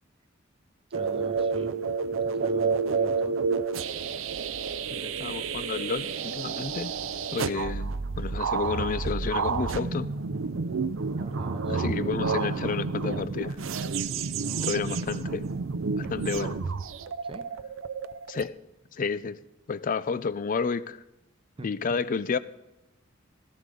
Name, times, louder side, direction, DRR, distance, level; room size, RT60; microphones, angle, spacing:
voice 1, 0.9-1.8 2.1-3.4 11.1-12.1 15.0-15.2 17.2-17.5 21.6-22.0, right 1 dB, 30° right, 0.7 m, -43 dB
sound 1, 0.9-18.4, right 5 dB, 80° right, 0.6 m, -30 dB
voice 2, 4.9-7.0 7.3-10.1 11.7-13.6 14.6-15.5 16.0-16.6 18.3-18.6 18.9-19.4 19.7-21.0 21.6-22.4, left 5 dB, 45° left, 0.4 m, -31 dB
16.0 x 14.5 x 3.8 m
head